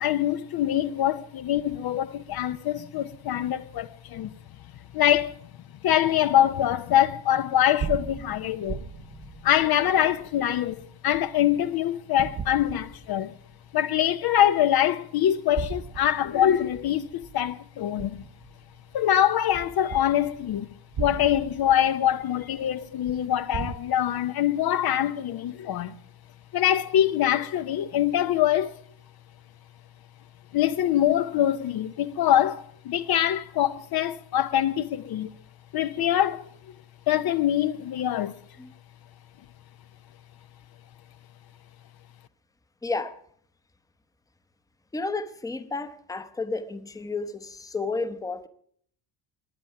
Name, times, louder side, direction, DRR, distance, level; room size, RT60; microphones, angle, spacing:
voice 1, 0.0-4.3 4.9-5.3 5.8-8.9 9.4-13.3 13.7-18.2 18.9-20.7 21.0-25.9 26.5-28.7 30.5-35.3 35.7-36.5 37.1-38.4, left 11 dB, 50° left, 0.6 m, -24 dB
sound 1, 7.5-11.7 12.2-13.5 14.0-14.1 15.3-19.0 19.5-23.8, right 6 dB, 30° right, 0.8 m, -38 dB
voice 2, 42.8-43.2 44.9-48.5, left 3 dB, 5° left, 0.8 m, -32 dB
20.0 x 9.1 x 5.8 m
cardioid pair, 125°, 47 cm